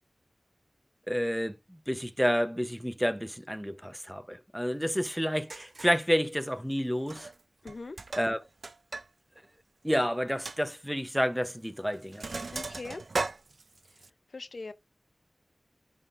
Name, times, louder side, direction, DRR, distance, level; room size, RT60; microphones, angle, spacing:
voice 1, 1.1-1.5 1.9-7.3 8.2-8.4 9.8-12.2, equal, ahead, 0.8 m, -29 dB
Sink (filling or washing), 5.1-5.2 5.5-6.0 7.0-7.4 7.7-9.1 9.4-9.5 9.9-10.0 10.5-10.6 11.5-11.7 11.9-14.1, right 3 dB, 70° right, 0.4 m, -37 dB
voice 2, 7.6-8.0 12.5-13.0 14.3-14.7, left 3 dB, 70° left, 0.6 m, -40 dB
10.5 x 3.7 x 2.5 m
wide cardioid pair, 65°, 0 cm